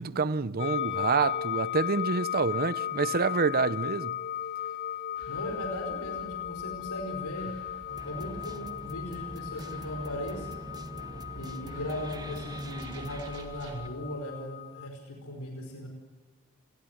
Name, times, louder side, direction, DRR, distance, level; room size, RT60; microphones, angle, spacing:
voice 1, 0.0-4.1, right 4 dB, 45° right, 0.7 m, -27 dB
sound 1, 0.6-14.9, left 10 dB, 50° left, 1.4 m, -36 dB
sound 2, 5.1-13.9, right 1 dB, 80° right, 5.8 m, -52 dB
voice 2, 5.3-7.5 8.0-10.5 11.3-15.9, left 1 dB, 90° left, 5.0 m, -37 dB
sound 3, 7.9-13.9, right 1 dB, 20° right, 1.4 m, -43 dB
29.0 x 21.5 x 8.0 m
head